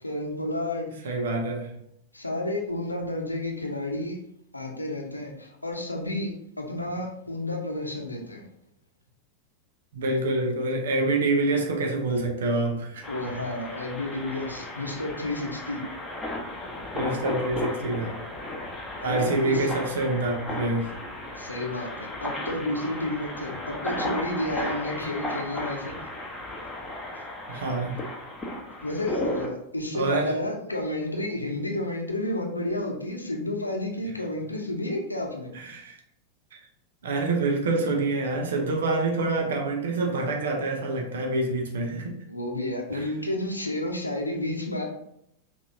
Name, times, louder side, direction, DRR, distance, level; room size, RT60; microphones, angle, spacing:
voice 1, 0.0-1.1 2.1-4.2 4.5-8.4 13.1-15.8 19.0-19.7 21.4-26.0 28.8-35.5 42.3-44.9, left 1 dB, 85° left, 1 dB, 0.7 m, -31 dB
voice 2, 1.0-1.7 9.9-13.1 16.9-18.2 19.0-20.9 27.5-28.0 29.9-30.3 35.5-36.0 37.0-42.2 42.9-43.1, right 2 dB, 60° right, 3 dB, 0.8 m, -26 dB
Cars Passing A Bus Stop, 13.0-29.5, left 1 dB, 10° left, 0.9 m, -35 dB
5.5 x 2.7 x 2.7 m, 0.74 s
figure-of-eight pair, 90°, 0 cm